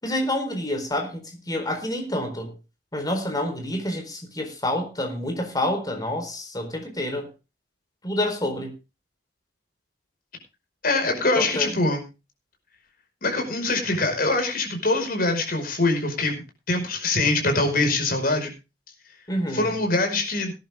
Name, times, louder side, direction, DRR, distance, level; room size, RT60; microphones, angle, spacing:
voice 1, 0.0-2.5 2.9-7.3 8.0-8.7 11.4-11.7 19.3-19.7, left 1 dB, 20° left, 4.3 m, -28 dB
voice 2, 10.8-12.0 13.2-16.4 16.7-18.5 19.5-20.5, left 2 dB, 55° left, 5.3 m, -23 dB
19.0 x 10.5 x 3.6 m
head